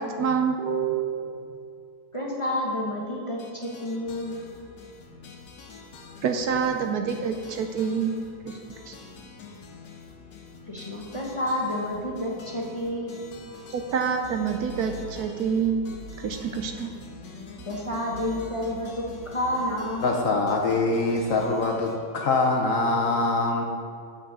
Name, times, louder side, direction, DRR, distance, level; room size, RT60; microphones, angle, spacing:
voice 1, 0.0-1.6 6.2-8.1 8.4-8.5 8.9-9.0 13.7-15.8 16.2-16.9, right 6 dB, 70° right, 5 dB, 1.0 m, -27 dB
voice 2, 2.1-4.4 10.7-13.2 17.7-20.1, left 1 dB, 25° left, -3 dB, 0.8 m, -30 dB
sound 1, 3.4-22.0, left 4 dB, 80° left, 1.6 m, -46 dB
sound 2, 14.2-17.3 17.6-20.1, right 4 dB, 90° right, 0.5 m, -45 dB
voice 3, 20.0-23.6, left 3 dB, 60° left, 2 dB, 1.0 m, -24 dB
7.0 x 6.1 x 6.7 m, 2.4 s
omnidirectional pair, 1.9 m